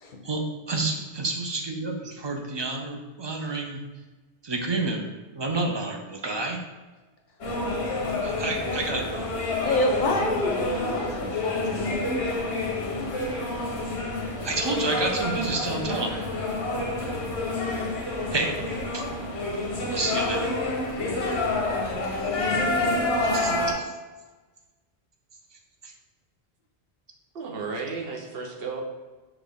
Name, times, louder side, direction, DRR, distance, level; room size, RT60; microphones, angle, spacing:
voice 1, 0.2-3.8 4.4-5.1 5.3-6.6 8.2-9.3 14.4-16.2 18.3-18.6 18.9-19.0 19.9-20.6 22.2-22.3 23.2-23.9 25.8-25.9, right 3 dB, 40° right, 2 dB, 0.4 m, -29 dB
sound 1, 7.4-23.7, left 2 dB, 90° left, 1.1 m, -28 dB
voice 2, 9.6-12.1, left 1 dB, 55° left, 1 dB, 0.7 m, -27 dB
voice 3, 27.3-28.8, right 4 dB, 65° right, 1 dB, 1.0 m, -33 dB
5.8 x 2.4 x 3.5 m, 1.2 s
omnidirectional pair, 1.1 m